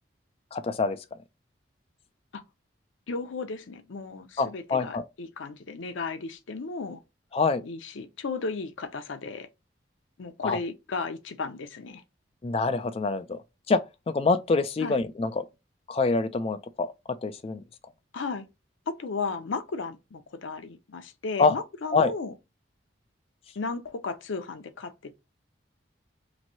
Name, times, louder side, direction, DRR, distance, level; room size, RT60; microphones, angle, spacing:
voice 1, 0.5-1.0 4.4-5.0 7.3-7.6 10.4-10.6 12.4-13.4 13.7-13.8 14.1-15.4 15.9-17.6 21.4-21.6 21.9-22.1, left 4 dB, 30° left, 0.3 m, -25 dB
voice 2, 3.1-7.0 7.6-9.5 10.2-12.0 14.8-15.0 18.1-18.5 18.9-22.3 23.6-25.1, left 4 dB, 80° left, 0.6 m, -35 dB
3.0 x 2.6 x 2.7 m
head